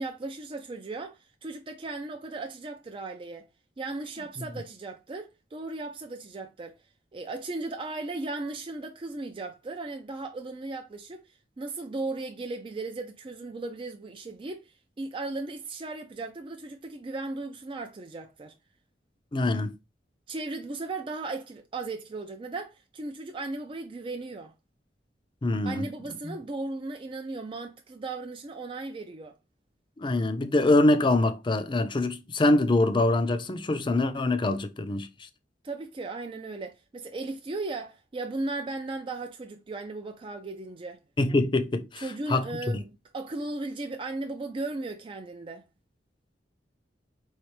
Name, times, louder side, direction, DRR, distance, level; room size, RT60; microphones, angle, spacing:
voice 1, 0.0-3.5 3.8-6.8 7.1-18.5 20.3-24.5 25.6-29.3 35.6-41.0 42.0-45.6, right 2 dB, 30° right, 0.4 m, -36 dB
voice 2, 19.3-19.7 25.4-25.8 26.2-26.3 30.0-35.1 41.2-42.0 42.3-42.4, left 2 dB, 25° left, 0.5 m, -24 dB
4.8 x 3.2 x 3.0 m
head